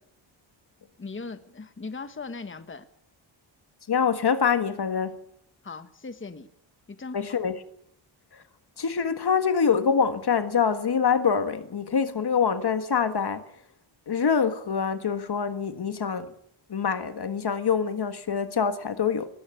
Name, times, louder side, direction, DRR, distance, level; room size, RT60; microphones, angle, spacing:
voice 1, 1.0-2.9 5.6-6.5 6.9-7.4, left 4 dB, 25° left, 1.4 m, -39 dB
voice 2, 3.9-5.2 7.1-7.5 8.8-13.4 14.1-16.3 16.7-19.3, left 6 dB, 50° left, 1.6 m, -25 dB
20.5 x 17.0 x 8.8 m
wide cardioid pair, 110°, 48 cm